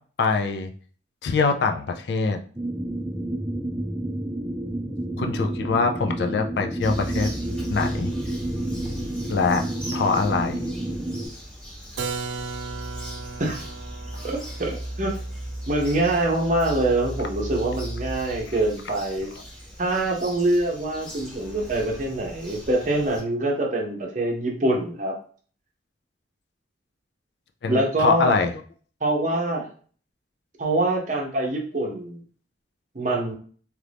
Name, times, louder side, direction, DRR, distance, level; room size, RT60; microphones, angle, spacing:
voice 1, 0.2-0.7 1.2-2.4 5.2-7.3 7.7-8.1 9.3-9.6 9.9-10.7 27.6-28.5, left 4 dB, 70° left, 5 dB, 0.4 m, -23 dB
sound 1, 2.5-11.3, right 1 dB, 10° right, 0.4 m, -30 dB
Bird vocalization bird call bird song, 6.8-23.2, equal, 5° left, 0.9 m, -37 dB
Keyboard (musical), 12.0-17.6, right 4 dB, 80° right, 0.4 m, -37 dB
voice 2, 14.2-15.2 15.7-19.3 19.8-25.2 27.7-28.4 29.0-29.7 30.6-32.2 32.9-33.3, right 2 dB, 40° right, 1 dB, 0.7 m, -24 dB
3.0 x 2.5 x 3.3 m, 0.43 s
head